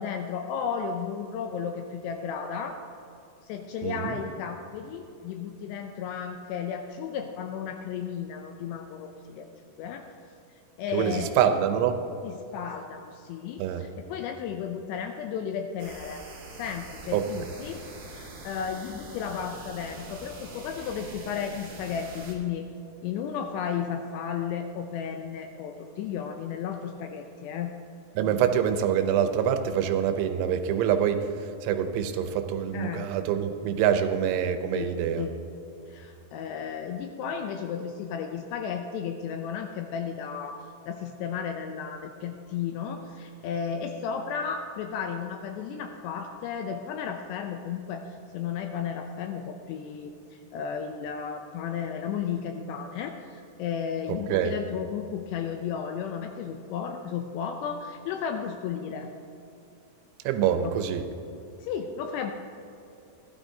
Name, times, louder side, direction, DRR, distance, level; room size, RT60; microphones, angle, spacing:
voice 1, 0.0-2.8 3.4-9.5 9.8-10.1 10.8-11.5 12.2-16.2 16.5-17.8 18.1-22.7 23.0-27.7 32.7-33.1 34.7-35.4 35.9-59.1 60.6-60.7 61.6-62.3, left 7 dB, 85° left, 5 dB, 2.5 m, -34 dB
voice 2, 3.8-4.2 10.9-11.9 13.6-13.8 17.1-17.2 28.2-31.2 31.6-35.2 54.3-54.6 60.3-61.0, right 9 dB, 90° right, 8 dB, 3.2 m, -25 dB
sound 1, 15.8-22.3, right 2 dB, 55° right, 1.7 m, -44 dB
16.0 x 12.5 x 2.7 m, 2.8 s
omnidirectional pair, 5.3 m